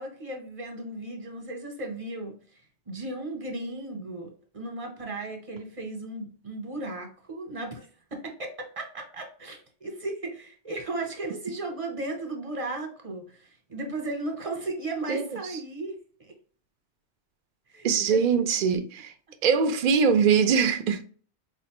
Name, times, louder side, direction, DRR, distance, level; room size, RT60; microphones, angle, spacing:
voice 1, 0.0-2.3 2.9-15.9 16.2-16.3 17.7-18.4, right 2 dB, 35° right, 0.9 m, -35 dB
voice 2, 15.1-15.4 17.8-19.1 19.4-21.0, right 6 dB, 60° right, 0.5 m, -22 dB
4.2 x 2.6 x 2.9 m
omnidirectional pair, 1.2 m